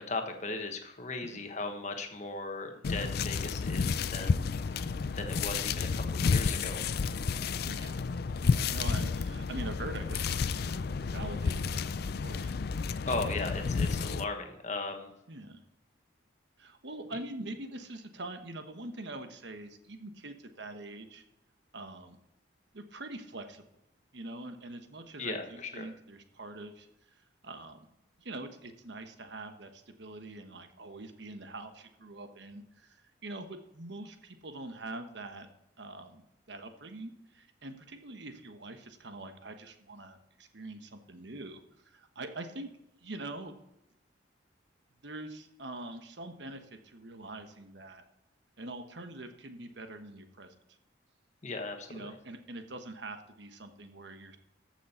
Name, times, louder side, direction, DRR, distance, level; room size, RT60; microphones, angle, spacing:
voice 1, 0.0-6.8 13.0-15.1 25.2-25.9 51.4-52.1, left 3 dB, 40° left, 5 dB, 1.3 m, -37 dB
sound 1, 2.8-14.2, left 5 dB, 55° left, 0.4 m, -31 dB
voice 2, 7.6-7.9 8.4-12.5 13.1-13.4 15.3-15.6 16.6-21.2 21.7-22.2 22.7-23.6 24.1-26.9 27.4-27.8 28.2-35.5 35.8-42.7 43.0-43.6 45.0-48.0 48.6-50.5 51.9-54.4, right 2 dB, 65° right, 7 dB, 1.2 m, -44 dB
14.0 x 6.2 x 4.3 m, 0.88 s
head